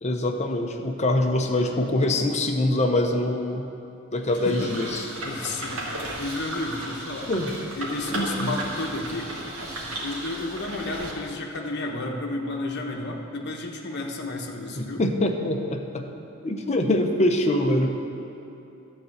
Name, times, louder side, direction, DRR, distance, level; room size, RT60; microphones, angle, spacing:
voice 1, 0.0-3.7 4.1-5.1 7.3-7.5 8.0-8.5 14.8-16.1 16.4-17.9, left 1 dB, 35° left, 3 dB, 0.7 m, -24 dB
voice 2, 4.3-4.7 5.2-5.9 6.2-7.3 7.8-9.3 10.0-15.0, left 2 dB, 55° left, 1 dB, 1.0 m, -32 dB
sound 1, 4.3-11.1, right 1 dB, 85° right, 1.9 m, -34 dB
12.0 x 4.2 x 7.8 m, 2.9 s
head